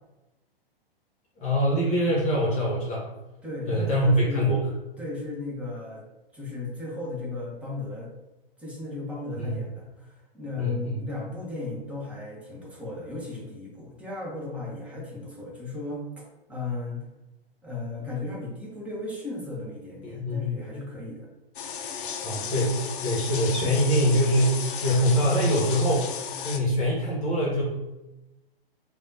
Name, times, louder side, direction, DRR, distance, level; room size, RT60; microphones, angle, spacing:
voice 1, 1.4-3.0 3.7-4.6 9.4-9.5 10.6-11.0 20.0-20.5 22.2-26.1 26.4-27.6, equal, 25° left, -5 dB, 1.0 m, -24 dB
voice 2, 3.4-4.5 5.0-6.0 6.3-8.1 8.6-17.0 17.6-21.3, left 2 dB, 5° right, -4 dB, 0.7 m, -36 dB
sound 1, 21.5-26.6, left 7 dB, 60° left, 0.5 m, -34 dB
3.3 x 2.3 x 2.7 m, 1.0 s
figure-of-eight pair, 110°, 30 cm